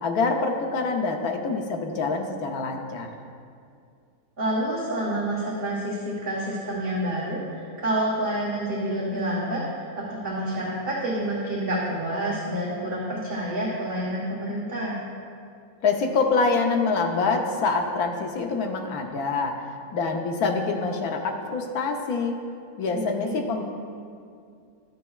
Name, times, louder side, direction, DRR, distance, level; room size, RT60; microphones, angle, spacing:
voice 1, 0.0-3.1 15.8-19.5 19.9-22.4 22.8-23.6, left 4 dB, 85° left, 2 dB, 1.3 m, -25 dB
voice 2, 4.4-15.0 23.2-23.3, right 1 dB, 40° right, -8 dB, 1.5 m, -28 dB
13.0 x 6.7 x 2.3 m, 2.3 s
omnidirectional pair, 1.6 m